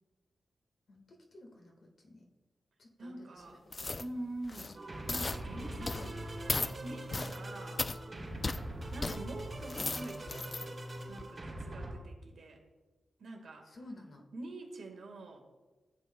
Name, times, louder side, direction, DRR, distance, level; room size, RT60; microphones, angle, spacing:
voice 1, 0.9-1.7 2.0-2.3 2.8-4.1 4.7-4.8 5.5-6.3 8.1-8.6 13.7-14.2, left 1 dB, 60° left, 1 dB, 1.6 m, -53 dB
voice 2, 3.0-3.6 4.0-4.8 5.1-7.9 8.9-10.8 11.1-12.6 13.2-13.7 14.3-15.4, right 2 dB, 80° right, 3 dB, 1.6 m, -45 dB
sound 1, 3.7-4.1 4.4-4.8 5.1-5.4 5.9-6.1 6.5-6.7 7.1-7.4 7.8-8.0 8.4-8.6 9.0-9.2 9.6-10.7 11.1-11.2, left 3 dB, 30° left, 0.3 m, -36 dB
sound 2, 4.7-11.9, right 1 dB, 40° right, 2.7 m, -42 dB
14.5 x 8.4 x 2.2 m, 1.2 s
wide cardioid pair, 105°, 0 cm